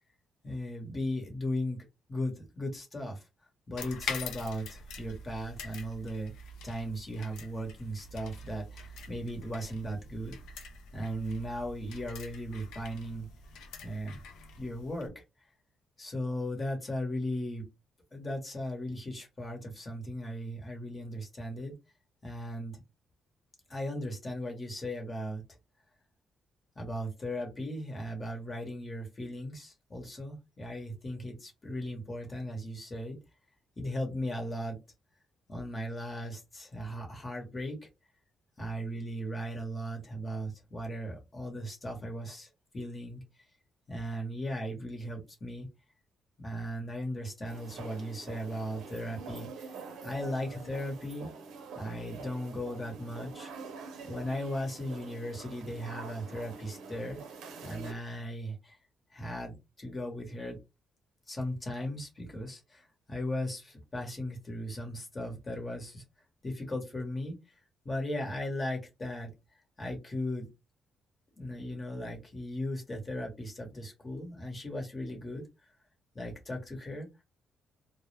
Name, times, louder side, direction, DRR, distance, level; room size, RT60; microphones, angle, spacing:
voice 1, 0.4-1.8 2.1-3.2 3.7-6.3 6.6-10.3 10.9-13.2 13.8-14.2 14.6-15.2 16.0-17.6 18.1-21.7 22.2-22.8 23.7-25.4 26.7-33.2 33.8-34.8 35.5-37.8 38.6-43.2 43.9-45.7 46.4-49.7 50.0-51.3 51.7-53.5 54.0-57.2 57.6-58.8 59.1-60.6 61.3-66.0 66.4-67.4 67.8-69.3 69.8-70.5 71.4-75.5 76.1-77.1, equal, 30° left, 1 dB, 1.0 m, -37 dB
sound 1, 3.8-15.1, left 4 dB, 85° left, 0.4 m, -45 dB
sound 2, 47.4-57.9, right 4 dB, 85° right, 0.5 m, -46 dB
2.1 x 2.0 x 3.2 m, 0.24 s
cardioid pair, 90°, 0 cm